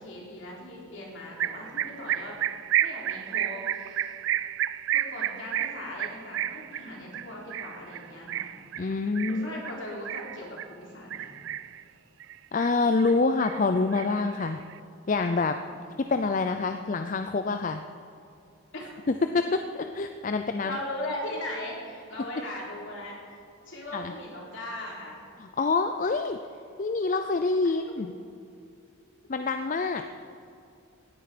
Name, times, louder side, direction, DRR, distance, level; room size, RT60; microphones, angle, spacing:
voice 1, 0.0-2.4 2.8-4.4 4.9-8.6 9.3-11.3 15.7-16.0 18.7-18.8 20.6-23.4 23.7-25.2, left 1 dB, 60° left, -3 dB, 3.7 m, -39 dB
sound 1, 1.4-10.7 11.1-11.8 12.2-13.1 13.4-14.7, right 11 dB, 60° right, 0.3 m, -31 dB
voice 2, 8.8-9.5 12.5-14.6 15.1-15.5 16.1-17.8 19.3-20.8 23.9-24.1 25.4-26.4 26.8-28.1 29.3-30.0, left 3 dB, 35° left, 7 dB, 0.4 m, -26 dB
17.5 x 10.0 x 5.1 m, 2.6 s
head